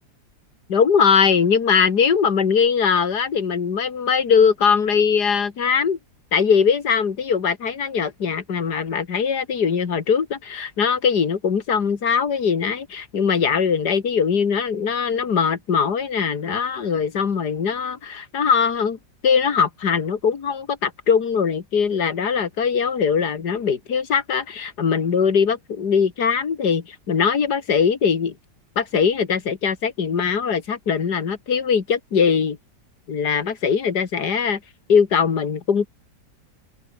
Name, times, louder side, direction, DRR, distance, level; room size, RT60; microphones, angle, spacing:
voice 1, 0.7-6.0 6.3-19.0 19.2-28.3 28.8-32.6 33.1-34.6 34.9-35.9, left 6 dB, 80° left, 2.5 m, -21 dB
open air
omnidirectional pair, 1.7 m